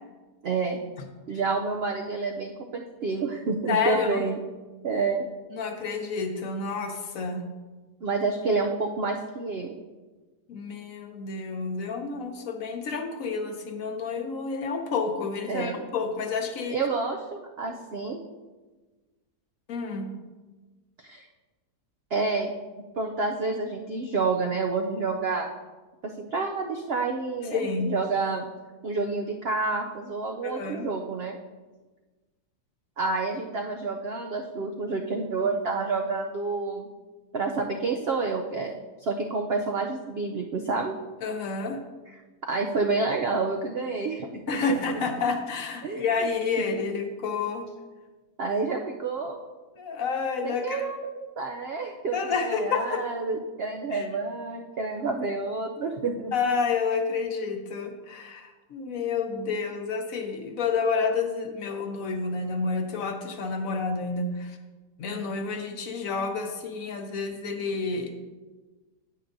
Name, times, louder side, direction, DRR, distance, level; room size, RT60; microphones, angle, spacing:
voice 1, 0.4-0.8 1.3-4.4 4.8-5.2 8.0-9.8 15.5-15.8 16.7-18.2 21.0-21.3 22.1-25.5 26.0-28.4 28.8-31.4 33.0-36.9 37.3-38.7 39.0-41.0 42.5-44.4 44.7-45.0 45.8-46.3 48.4-49.4 50.4-56.3, right 3 dB, 80° right, 2 dB, 0.5 m, -29 dB
voice 2, 3.7-4.2 5.5-7.4 10.5-16.8 19.7-20.1 27.5-27.9 30.4-30.9 41.2-41.8 44.5-47.7 49.8-50.8 52.1-53.0 53.9-54.1 56.3-64.6 65.0-68.1, left 4 dB, 60° left, 5 dB, 1.1 m, -29 dB
9.4 x 8.6 x 2.6 m, 1.3 s
omnidirectional pair, 1.7 m